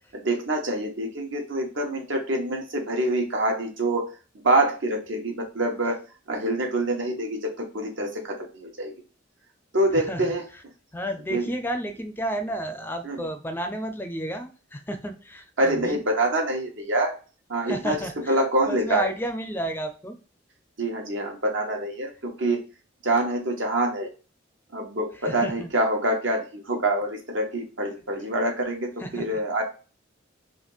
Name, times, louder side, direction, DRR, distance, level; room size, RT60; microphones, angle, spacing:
voice 1, 0.1-4.1 4.4-6.0 6.3-8.9 9.7-10.4 11.3-11.4 13.0-13.2 15.6-17.1 17.5-18.0 18.3-19.1 20.8-22.6 23.0-24.1 24.7-29.6, right 1 dB, 80° right, 2 dB, 1.2 m, -26 dB
voice 2, 9.9-10.3 10.9-16.0 17.7-18.4 18.7-20.2 25.1-25.7 29.0-29.2, equal, 10° left, 7 dB, 0.4 m, -32 dB
3.5 x 2.8 x 3.9 m, 0.35 s
head